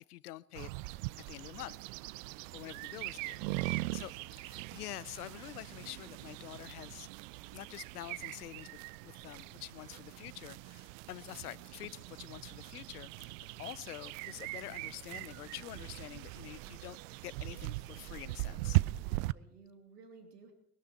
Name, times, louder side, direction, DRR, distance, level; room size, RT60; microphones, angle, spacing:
voice 1, 0.1-0.7 1.3-1.8 2.5-4.1 4.4-7.1 7.5-8.7 9.0-13.3 13.6-17.0 17.2-18.8, left 15 dB, 80° left, 22 dB, 0.7 m, -47 dB
sound 1, 0.5-19.3, right 21 dB, 60° right, 0.5 m, -40 dB
voice 2, 3.5-4.3 18.8-20.5, right 4 dB, 85° right, 4 dB, 2.9 m, -58 dB
21.0 x 12.0 x 4.5 m, 0.70 s
hypercardioid pair, 75°, 45 cm